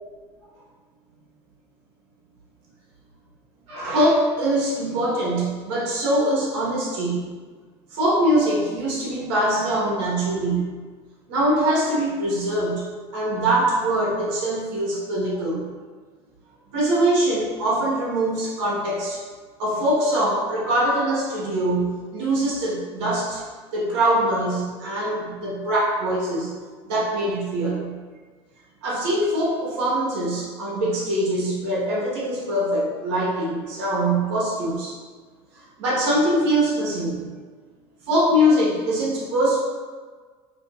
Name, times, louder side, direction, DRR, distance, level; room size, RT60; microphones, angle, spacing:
voice 1, 3.7-7.3 7.9-10.6 11.3-12.8 13.1-15.7 16.7-19.2 19.6-23.4 23.7-26.5 26.8-27.9 28.8-34.9 35.8-37.3 38.1-39.6, right 1 dB, 75° right, -6 dB, 1.4 m, -23 dB
4.9 x 2.9 x 2.5 m, 1.5 s
hypercardioid pair, 85°, 14 cm